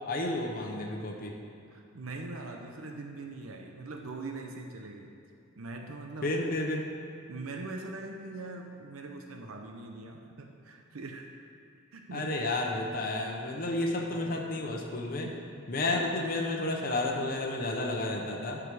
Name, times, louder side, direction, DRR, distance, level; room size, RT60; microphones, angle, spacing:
voice 1, 0.1-1.3 6.2-6.8 12.1-15.3 15.7-18.6, left 2 dB, 40° left, 0 dB, 0.9 m, -31 dB
voice 2, 1.7-5.1 5.6-6.3 7.3-11.3 11.9-12.3 12.6-12.7 14.1-14.4, right 3 dB, 80° right, 3 dB, 0.7 m, -42 dB
12.5 x 4.9 x 4.8 m, 2.4 s
head